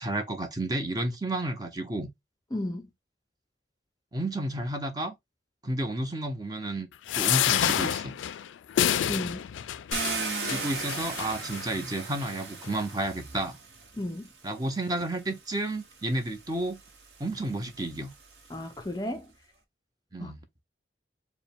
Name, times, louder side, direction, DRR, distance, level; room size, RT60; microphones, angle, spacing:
voice 1, 0.0-2.1 4.1-5.1 5.6-6.9 7.1-8.2 10.4-13.6 14.4-16.8 17.2-18.1 20.1-20.4, right 1 dB, 20° right, 0.6 m, -31 dB
voice 2, 2.5-2.9 9.1-9.4 14.0-14.3 18.5-19.3 20.2-20.3, left 1 dB, 20° left, 0.4 m, -33 dB
sound 1, 7.1-11.6 12.3-12.4 12.6-12.7, left 10 dB, 85° left, 0.3 m, -28 dB
Car, 9.9-14.0 15.0-15.1 15.6-18.9, right 4 dB, 60° right, 0.9 m, -37 dB
4.6 x 2.1 x 3.5 m
head